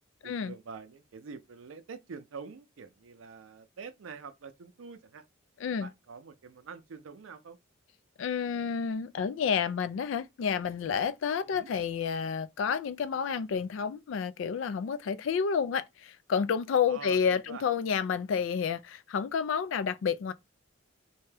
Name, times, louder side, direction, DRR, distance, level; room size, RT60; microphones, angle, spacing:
voice 1, 0.2-5.2 5.7-7.6 11.3-11.7 16.9-17.6, right 5 dB, 85° right, 0.5 m, -46 dB
voice 2, 8.2-20.3, left 6 dB, 70° left, 0.3 m, -30 dB
2.6 x 2.2 x 3.2 m
head